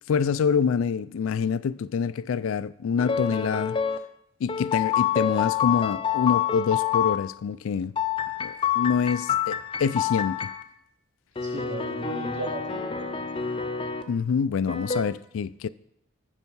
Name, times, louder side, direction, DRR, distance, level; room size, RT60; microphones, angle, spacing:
voice 1, 0.1-3.8 4.4-7.9 8.4-10.5 14.1-15.7, left 6 dB, 80° left, 0.3 m, -26 dB
sound 1, 3.0-4.0 4.5-7.2 8.0-10.6 11.4-14.0 14.7-15.0, left 8 dB, 25° left, 0.5 m, -27 dB
voice 2, 11.4-13.4, right 2 dB, 60° right, 2.7 m, -36 dB
14.0 x 5.5 x 5.5 m
head